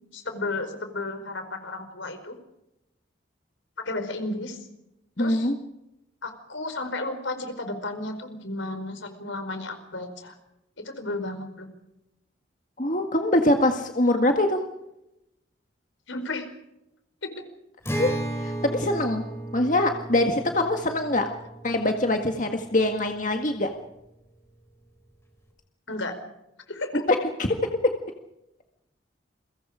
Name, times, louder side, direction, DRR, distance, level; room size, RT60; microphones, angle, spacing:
voice 1, 0.1-2.4 3.8-4.7 5.2-5.5 6.2-10.4 10.8-11.7 16.1-16.5 17.2-17.3 25.9-26.1 26.7-26.9, left 2 dB, 80° left, 7 dB, 4.9 m, -33 dB
voice 2, 5.2-5.5 12.8-14.6 17.9-19.2 19.5-21.3 21.6-23.7 26.9-27.5, left 1 dB, 40° left, 4 dB, 1.8 m, -23 dB
Acoustic guitar, 17.8-23.3, right 1 dB, 15° left, 4.1 m, -35 dB
29.5 x 23.5 x 5.1 m, 0.88 s
head